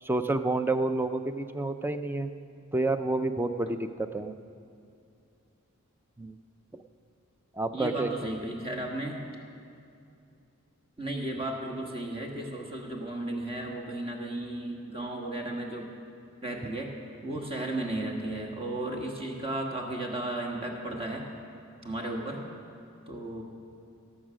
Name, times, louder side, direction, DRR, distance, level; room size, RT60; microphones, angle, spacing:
voice 1, 0.0-2.3 2.7-4.3 6.2-6.4 6.7-6.8 7.6-8.1, right 2 dB, 10° right, 9 dB, 0.4 m, -29 dB
voice 2, 7.7-9.2 11.0-15.9 16.4-16.9 17.2-21.2 21.8-22.4 23.1-23.4, right 1 dB, 25° right, 1 dB, 1.5 m, -34 dB
18.0 x 7.3 x 6.2 m, 2.5 s
head